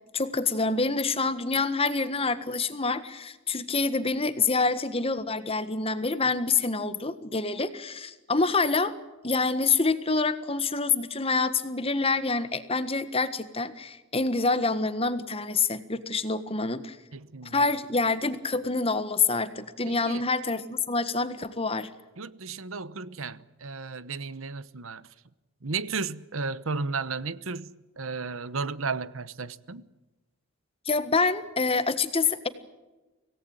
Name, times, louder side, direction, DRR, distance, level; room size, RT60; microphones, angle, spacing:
voice 1, 0.1-8.9 9.2-17.0 17.5-21.9 30.9-32.5, left 4 dB, 30° left, 1.5 m, -26 dB
voice 2, 17.1-17.7 19.9-20.3 22.2-25.1 25.6-27.7 28.0-29.9, right 4 dB, 80° right, 1.0 m, -34 dB
25.5 x 18.0 x 8.9 m
head